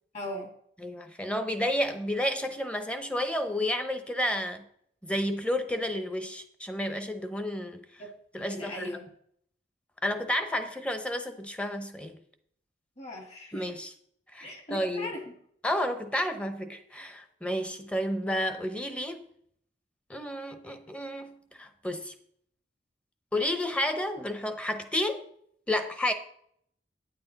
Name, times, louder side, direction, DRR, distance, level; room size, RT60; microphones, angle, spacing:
voice 1, 0.1-0.5 8.0-9.1 13.0-13.7 14.4-15.3, left 1 dB, 40° left, 3 dB, 2.1 m, -39 dB
voice 2, 0.8-4.7 5.0-7.8 8.3-8.9 10.0-12.2 13.5-13.9 14.3-15.1 15.6-19.2 20.1-22.1 23.3-25.2 25.7-26.1, left 1 dB, 5° left, 8 dB, 0.8 m, -31 dB
9.4 x 9.1 x 4.0 m, 0.66 s
head